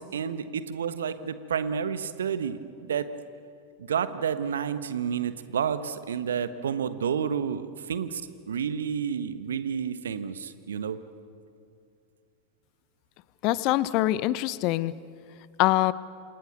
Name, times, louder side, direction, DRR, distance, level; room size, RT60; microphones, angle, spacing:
voice 1, 0.0-3.1 3.8-8.2 8.5-11.0, right 7 dB, 65° right, 12 dB, 1.3 m, -30 dB
voice 2, 13.4-14.9 15.6-15.9, left 17 dB, 40° left, 18 dB, 0.8 m, -24 dB
28.0 x 26.5 x 6.8 m, 2.4 s
figure-of-eight pair, 90°, 0 cm